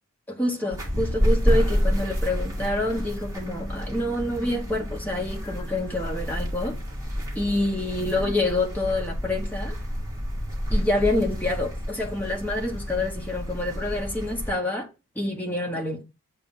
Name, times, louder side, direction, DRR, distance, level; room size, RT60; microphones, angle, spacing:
voice 1, 0.3-6.8 7.3-9.8 10.7-14.9 15.2-16.0, left 1 dB, 5° left, 1.0 m, -27 dB
sound 1, 0.7-14.5, equal, 15° right, 1.7 m, -29 dB
7.8 x 3.0 x 5.3 m
head